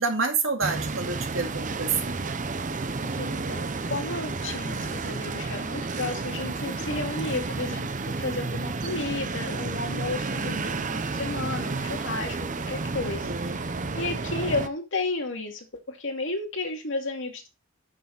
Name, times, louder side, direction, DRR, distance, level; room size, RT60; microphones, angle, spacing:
voice 1, 0.0-2.2 13.0-13.6, right 4 dB, 70° right, 2.3 m, -28 dB
sound 1, 0.6-14.7, right 3 dB, 40° right, 0.7 m, -31 dB
voice 2, 3.1-17.5, left 3 dB, 65° left, 2.5 m, -33 dB
9.1 x 6.9 x 4.1 m
head